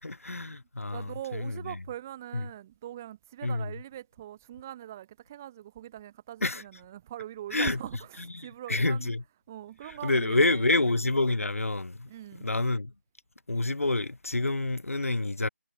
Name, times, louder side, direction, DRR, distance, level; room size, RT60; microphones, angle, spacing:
voice 1, 0.0-1.8 2.3-2.5 3.4-3.7 6.4-6.6 7.5-7.8 8.3-9.2 10.0-12.1 12.4-12.9 13.5-15.5, left 2 dB, 75° left, 4.3 m, -28 dB
voice 2, 0.9-9.1 9.5-10.7 12.1-12.5, right 12 dB, 10° right, 2.2 m, -42 dB
figure-of-eight pair, 175°, 8 cm